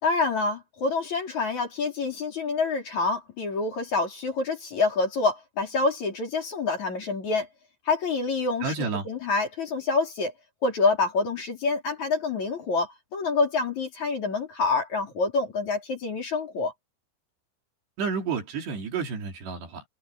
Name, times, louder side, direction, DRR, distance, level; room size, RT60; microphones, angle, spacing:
voice 1, 0.0-7.5 7.9-8.7 9.1-10.3 10.6-16.7, left 3 dB, 45° left, 5.1 m, -27 dB
voice 2, 8.6-9.1 18.0-19.8, right 5 dB, 75° right, 6.1 m, -30 dB
omnidirectional pair, 4.8 m